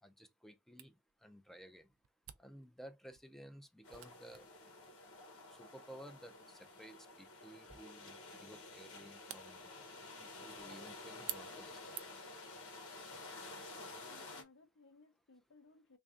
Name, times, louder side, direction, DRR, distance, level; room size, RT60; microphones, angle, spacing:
voice 1, 0.0-1.9 2.4-4.5 5.5-9.7 10.2-11.8, equal, ahead, 0.4 m, -55 dB
Camera, 0.8-12.4, right 13 dB, 65° right, 0.4 m, -54 dB
sound 1, 3.8-14.4, left 2 dB, 80° left, 1.2 m, -51 dB
voice 2, 13.7-16.0, left 3 dB, 60° left, 0.7 m, -63 dB
3.3 x 2.6 x 3.6 m
head